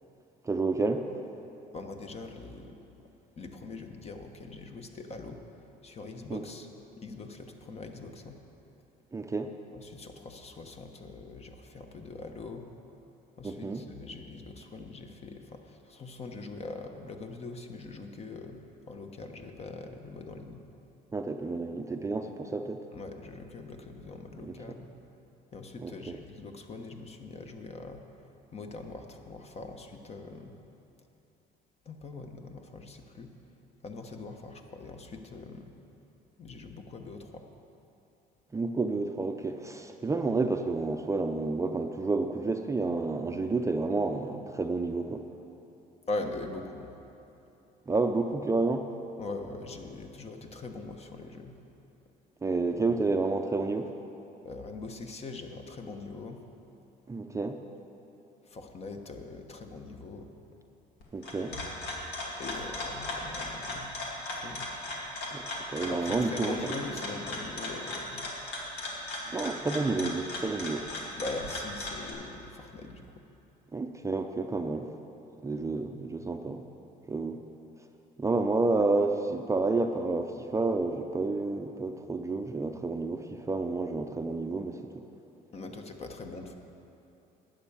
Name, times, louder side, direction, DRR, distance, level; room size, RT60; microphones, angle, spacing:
voice 1, 0.4-1.0 6.3-6.4 9.1-9.5 13.4-13.8 21.1-22.8 24.4-24.5 25.8-26.2 38.5-45.2 47.9-48.9 52.4-53.9 57.1-57.6 61.1-61.6 65.3-66.7 69.3-70.9 73.7-74.9 75.4-76.6 77.1-77.4 78.2-85.0, right 3 dB, 20° right, 5 dB, 0.5 m, -30 dB
voice 2, 1.7-2.8 3.4-5.4 5.8-6.7 7.0-8.4 9.7-12.7 13.4-18.6 18.9-20.6 22.9-24.9 25.5-28.0 28.5-30.5 31.8-33.3 33.8-35.7 36.4-37.4 46.1-46.9 49.2-51.5 54.4-56.4 58.4-60.3 62.4-63.9 64.4-64.7 65.9-68.3 71.1-73.2 85.5-86.5, left 3 dB, 40° left, 5 dB, 1.1 m, -42 dB
sound 1, 61.0-72.1, left 2 dB, 90° left, 2.3 m, -37 dB
11.5 x 9.1 x 7.2 m, 2.9 s
cardioid pair, 110°, 17 cm